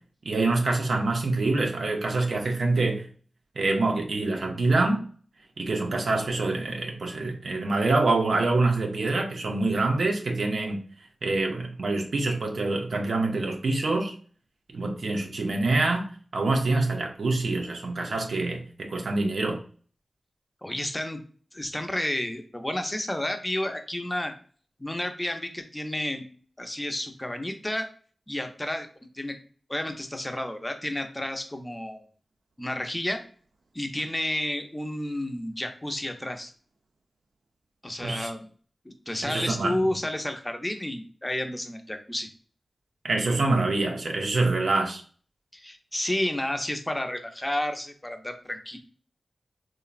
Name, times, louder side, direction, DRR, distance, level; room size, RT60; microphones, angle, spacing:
voice 1, 0.2-3.1 3.6-5.0 5.6-10.8 11.2-14.1 14.7-19.6 38.0-38.3 39.2-39.8 43.0-45.0, right 3 dB, 80° right, 0.4 m, -26 dB
voice 2, 20.6-21.2 21.5-24.3 24.8-26.2 26.6-27.9 28.3-28.9 29.1-29.4 29.7-32.0 32.6-33.2 33.7-36.5 37.8-38.5 38.8-42.3 45.5-48.8, left 1 dB, 20° left, 0.5 m, -31 dB
3.1 x 2.0 x 2.3 m
cardioid pair, 55°, 0 cm